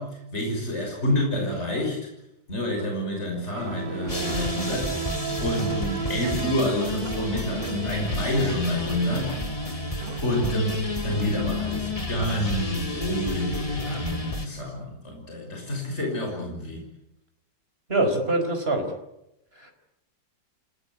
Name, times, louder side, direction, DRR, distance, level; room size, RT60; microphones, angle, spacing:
voice 1, 0.0-2.1 2.5-5.1 5.4-9.3 9.7-16.8, left 1 dB, 35° left, 1 dB, 6.4 m, -28 dB
sound 1, 3.5-11.6, right 8 dB, 80° right, 2.0 m, -36 dB
sound 2, 4.1-14.5, left 2 dB, 20° left, 2.2 m, -31 dB
voice 2, 17.9-18.9 19.6-19.7, right 2 dB, 30° right, 5 dB, 5.0 m, -24 dB
28.0 x 19.0 x 9.7 m, 0.87 s
omnidirectional pair, 2.0 m